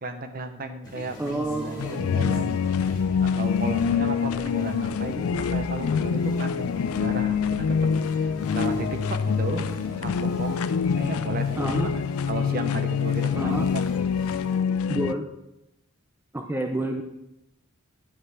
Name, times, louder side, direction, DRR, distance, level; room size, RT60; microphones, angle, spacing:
voice 1, 0.0-2.9 3.2-7.8 8.1-9.7 10.0-10.6 10.9-13.9, right 2 dB, 45° right, 7 dB, 0.8 m, -34 dB
sound 1, 0.8-14.6, left 1 dB, 20° left, 1.9 m, -45 dB
voice 2, 1.2-2.0 11.6-11.9 13.4-13.7 14.9-15.3 16.3-17.0, right 1 dB, 10° right, 3 dB, 0.5 m, -28 dB
sound 2, 1.8-15.1, left 6 dB, 85° left, 0.4 m, -25 dB
10.5 x 5.2 x 4.8 m, 0.91 s
head